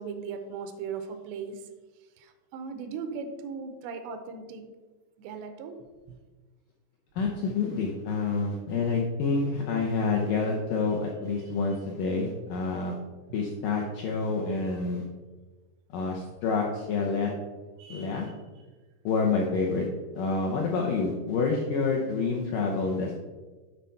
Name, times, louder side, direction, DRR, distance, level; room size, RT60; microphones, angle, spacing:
voice 1, 0.0-1.7 2.2-4.7 5.2-6.2 11.4-11.5 17.8-18.3, right 5 dB, 90° right, 8 dB, 3.0 m, -38 dB
voice 2, 7.2-12.9 13.3-15.0 15.9-17.3 17.9-18.3 19.0-19.9 20.1-23.2, left 4 dB, 85° left, 0 dB, 1.9 m, -28 dB
9.8 x 4.2 x 5.7 m, 1.3 s
omnidirectional pair, 5.0 m